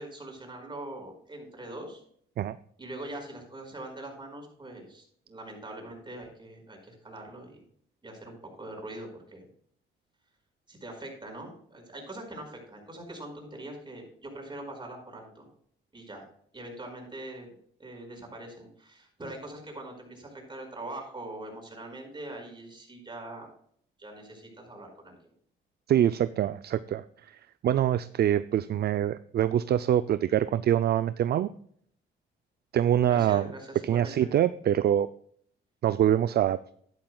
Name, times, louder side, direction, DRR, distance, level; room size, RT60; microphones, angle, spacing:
voice 1, 0.0-2.0 2.8-7.6 8.0-9.5 10.7-15.5 15.9-16.2 16.5-17.5 17.8-23.5 24.0-25.2 33.1-34.3, right 1 dB, 25° right, 2 dB, 4.8 m, -42 dB
voice 2, 25.9-27.0 27.6-31.5 32.7-33.5 33.8-35.1 35.8-36.6, right 10 dB, 55° right, 13 dB, 0.4 m, -24 dB
11.5 x 11.0 x 2.3 m, 0.62 s
cardioid pair, 90°, 20 cm